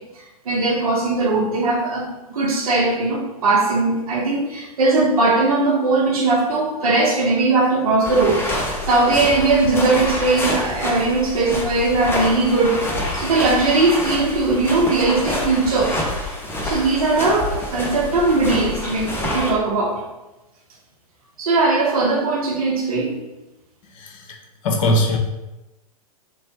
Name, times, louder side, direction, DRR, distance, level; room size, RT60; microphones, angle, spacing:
voice 1, 0.4-8.4 8.9-12.8 13.1-16.0 16.6-20.0 21.4-23.2, right 3 dB, 65° right, -1 dB, 1.1 m, -19 dB
sound 1, 8.0-19.5, left 1 dB, 10° left, 0.8 m, -27 dB
voice 2, 24.0-24.4 24.6-25.2, left 1 dB, 55° left, 2 dB, 0.9 m, -20 dB
3.1 x 3.1 x 4.1 m, 1.0 s
figure-of-eight pair, 100°, 19 cm